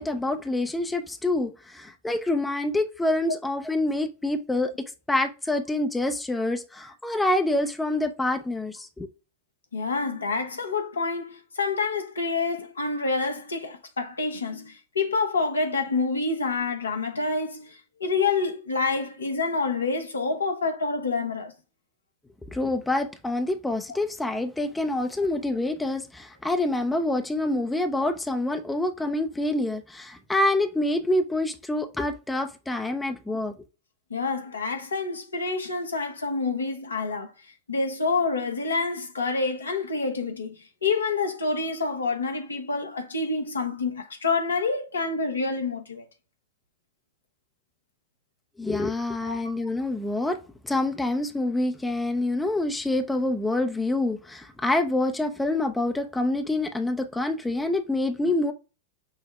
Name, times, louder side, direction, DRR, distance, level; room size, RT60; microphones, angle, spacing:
voice 1, 0.0-4.7 5.1-9.1 22.5-33.5 48.6-58.5, left 2 dB, 5° left, 0.5 m, -26 dB
voice 2, 9.7-21.5 34.1-37.3 37.7-40.6 40.8-46.0 49.2-49.5, left 4 dB, 75° left, 0.8 m, -27 dB
5.9 x 2.1 x 3.3 m
figure-of-eight pair, 90°, 0 cm